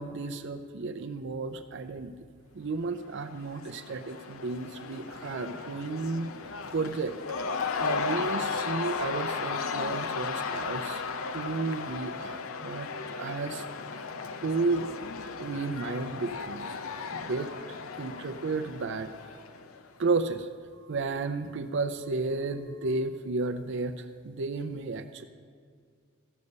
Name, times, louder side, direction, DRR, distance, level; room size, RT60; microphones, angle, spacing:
voice 1, 0.0-2.1 2.5-6.3 6.7-7.1 7.8-11.0 11.3-13.6 14.4-14.9 15.4-16.7 17.1-17.5 18.0-19.1 20.0-20.5 20.9-25.2, right 3 dB, 60° right, 10 dB, 0.5 m, -32 dB
Cheering / Crowd, 3.0-19.9, left 5 dB, 85° left, 0.6 m, -35 dB
14.5 x 6.8 x 5.4 m, 2.1 s
head